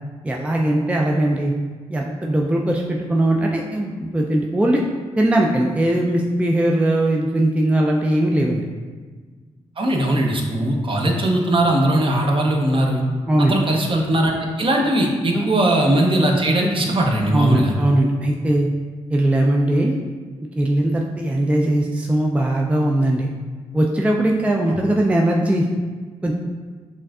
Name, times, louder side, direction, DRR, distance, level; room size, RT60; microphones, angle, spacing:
voice 1, 0.2-1.5 1.9-4.8 5.2-8.6 13.3-13.6 15.3-15.5 17.3-18.7 19.1-20.0 20.6-23.3 23.7-25.7 26.2-26.4, right 1 dB, 10° right, 0 dB, 0.4 m, -19 dB
voice 2, 9.8-13.0 13.4-17.7 24.7-24.8, right 1 dB, 40° right, 0 dB, 0.7 m, -19 dB
5.4 x 2.6 x 2.3 m, 1.5 s
supercardioid pair, 50°, 13 cm